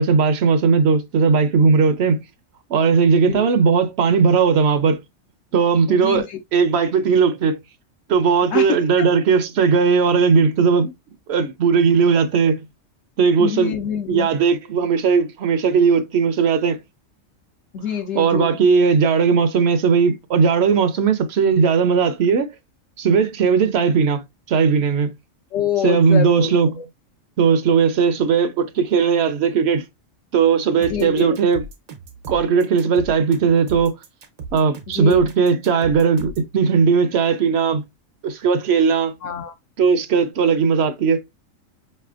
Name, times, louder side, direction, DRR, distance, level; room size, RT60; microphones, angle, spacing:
voice 1, 0.0-2.2 2.7-5.0 5.5-6.3 6.5-7.6 8.1-10.9 11.3-12.6 13.2-13.7 14.1-16.8 18.1-22.5 23.0-25.1 25.8-26.8 27.4-29.8 30.3-31.6 32.3-34.0 34.5-37.8 38.2-39.1 39.8-41.2, right 5 dB, 60° right, 0.7 m, -17 dB
voice 2, 3.2-3.5 5.9-6.4 8.5-8.7 9.0-9.1 13.4-14.3 17.7-18.6 25.5-26.8 30.8-31.4 34.9-35.3 39.2-39.5, left 8 dB, 75° left, 1.0 m, -26 dB
sound 1, 30.8-36.5, right 4 dB, 85° right, 1.3 m, -36 dB
5.3 x 3.3 x 2.3 m
omnidirectional pair, 1.4 m